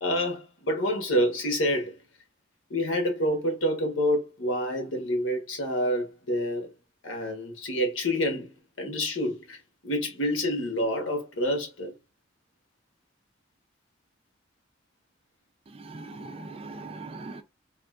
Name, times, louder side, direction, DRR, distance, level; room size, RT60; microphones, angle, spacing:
voice 1, 0.0-1.9 2.7-6.7 7.0-9.6 9.8-11.9, equal, 85° left, 1.2 m, -28 dB
voice 2, 15.7-17.4, right 3 dB, 30° right, 0.4 m, -40 dB
3.7 x 2.4 x 2.3 m
head